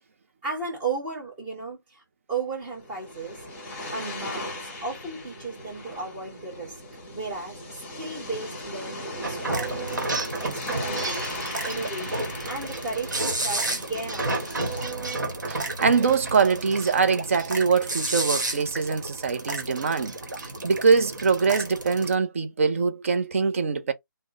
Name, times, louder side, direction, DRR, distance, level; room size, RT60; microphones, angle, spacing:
voice 1, 0.4-2.0 2.3-3.4 3.9-4.6 4.8-6.8 7.1-10.0 10.4-14.9, right 3 dB, 10° right, 1.0 m, -35 dB
sound 1, 2.6-14.9, left 1 dB, 15° left, 1.6 m, -38 dB
sound 2, 9.2-22.1, right 2 dB, 65° right, 1.1 m, -31 dB
voice 2, 15.5-20.1 20.6-23.9, right 5 dB, 40° right, 0.5 m, -23 dB
3.6 x 2.0 x 2.4 m
figure-of-eight pair, 150°, 11 cm